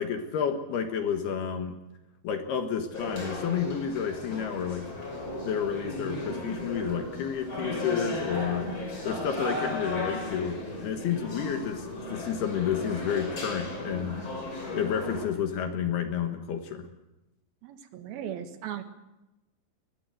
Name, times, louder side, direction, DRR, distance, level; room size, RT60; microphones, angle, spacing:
voice 1, 0.0-1.8 2.2-4.9 5.4-8.7 9.0-14.2 14.7-16.9, left 7 dB, 65° left, 6 dB, 3.2 m, -30 dB
sound 1, 2.9-15.3, left 2 dB, 25° left, 5.7 m, -36 dB
voice 2, 8.7-9.2 17.6-18.8, right 10 dB, 65° right, 8 dB, 3.0 m, -38 dB
22.5 x 19.5 x 7.8 m, 0.99 s
omnidirectional pair, 5.2 m